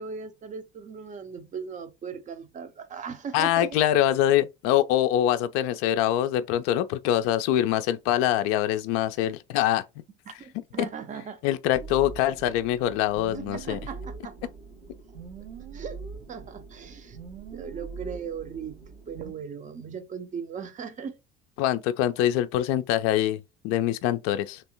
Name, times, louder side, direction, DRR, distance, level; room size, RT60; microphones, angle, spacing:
voice 1, 0.0-3.8 10.3-11.4 13.3-14.5 15.7-16.0 16.3-17.2 17.5-21.2, right 6 dB, 25° right, 0.6 m, -38 dB
voice 2, 3.3-9.8 10.8-10.9 11.4-13.8 21.6-24.6, left 12 dB, 45° left, 0.5 m, -24 dB
sound 1, 11.7-19.3, right 5 dB, 65° right, 1.5 m, -42 dB
3.4 x 3.0 x 2.7 m
figure-of-eight pair, 65°, 31 cm